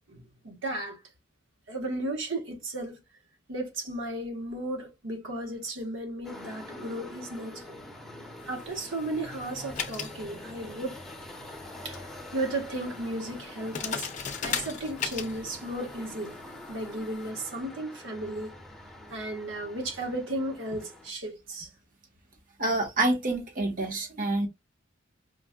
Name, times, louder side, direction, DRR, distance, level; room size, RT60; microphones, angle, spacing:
voice 1, 0.1-1.0 1.7-3.0 3.5-7.6 8.4-11.0 11.8-14.1 14.4-16.3 16.7-18.6 19.1-21.7, right 1 dB, 75° right, 1.3 m, -34 dB
sound 1, 6.2-21.1, left 1 dB, ahead, 1.0 m, -45 dB
sound 2, 8.4-17.3, left 7 dB, 40° left, 0.6 m, -39 dB
voice 2, 22.6-24.5, right 2 dB, 45° right, 1.2 m, -27 dB
5.1 x 2.4 x 2.2 m
head